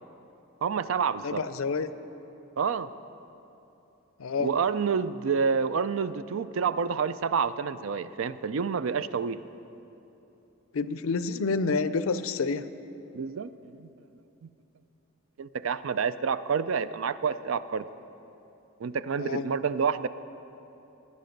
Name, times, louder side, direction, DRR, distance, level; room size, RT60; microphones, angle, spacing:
voice 1, 0.6-1.4 2.6-2.9 4.4-9.4 13.1-13.9 15.4-17.9 18.8-20.1, right 6 dB, 70° right, 14 dB, 0.4 m, -28 dB
voice 2, 1.2-1.9 4.2-4.5 10.7-12.7 19.2-19.5, left 4 dB, 80° left, 13 dB, 0.5 m, -28 dB
17.0 x 10.0 x 5.2 m, 2.9 s
head